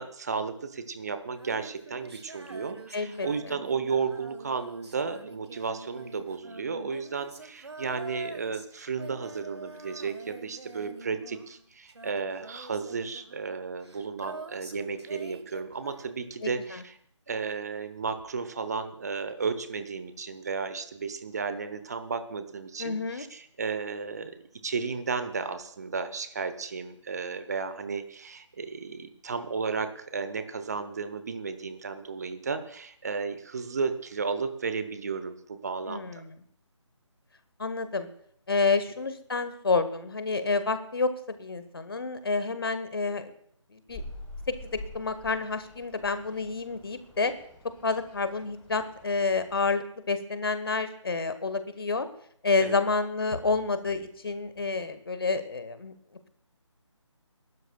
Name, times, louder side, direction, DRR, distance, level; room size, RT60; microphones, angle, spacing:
voice 1, 0.0-17.0 17.3-24.3 24.6-36.2 52.6-52.8, right 5 dB, 30° right, 11 dB, 0.9 m, -33 dB
Female singing, 1.3-16.6 18.2-18.3, right 2 dB, 60° right, 1.5 m, -46 dB
voice 2, 2.9-3.6 16.7-16.8 22.8-23.2 35.9-36.3 37.6-38.1 38.5-43.3 43.7-44.0 44.6-47.3 47.8-52.1 52.4-55.9, left 4 dB, 50° left, 11 dB, 1.2 m, -29 dB
sound 1, 43.9-49.7, left 1 dB, 5° left, 0.9 m, -46 dB
27.0 x 12.5 x 2.3 m, 0.65 s
figure-of-eight pair, 150°, 16 cm